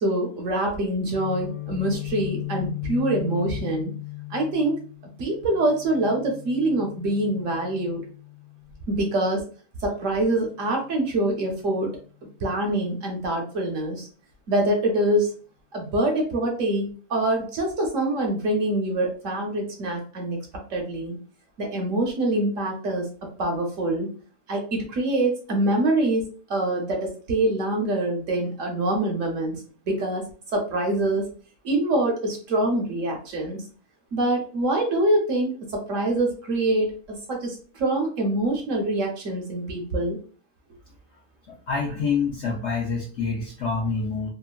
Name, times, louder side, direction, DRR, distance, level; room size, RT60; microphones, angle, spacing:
voice 1, 0.0-3.9 4.3-4.7 5.2-8.0 8.9-9.4 9.8-11.9 12.4-14.1 14.5-15.3 15.7-20.4 20.7-21.2 21.6-23.1 23.4-24.1 24.5-26.2 26.5-29.6 29.9-30.2 30.5-31.2 31.6-33.6 34.1-36.9 37.3-40.2, right 1 dB, 60° right, 1 dB, 1.0 m, -25 dB
Guitar, 1.1-9.0, left 19 dB, 85° left, 1.2 m, -37 dB
voice 2, 41.5-44.3, left 4 dB, 65° left, -3 dB, 0.7 m, -27 dB
2.9 x 2.3 x 2.3 m, 0.39 s
omnidirectional pair, 1.7 m